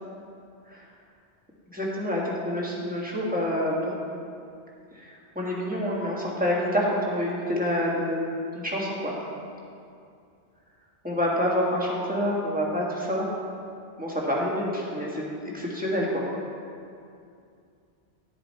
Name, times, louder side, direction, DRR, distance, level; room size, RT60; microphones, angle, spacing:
voice 1, 1.7-4.0 4.9-8.2 8.5-9.2 11.0-13.3 14.0-15.2 15.5-16.2, equal, 5° right, -5 dB, 1.7 m, -27 dB
11.0 x 7.2 x 4.3 m, 2.4 s
omnidirectional pair, 1.2 m